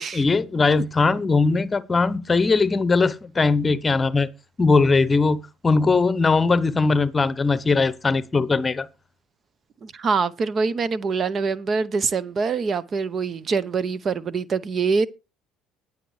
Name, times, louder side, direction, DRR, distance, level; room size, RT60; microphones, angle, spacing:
voice 1, 0.0-4.3 4.6-8.9, left 4 dB, 25° left, 0.9 m, -20 dB
voice 2, 9.8-15.1, right 5 dB, 40° right, 0.7 m, -24 dB
20.5 x 7.2 x 3.2 m
hypercardioid pair, 75°, 0 cm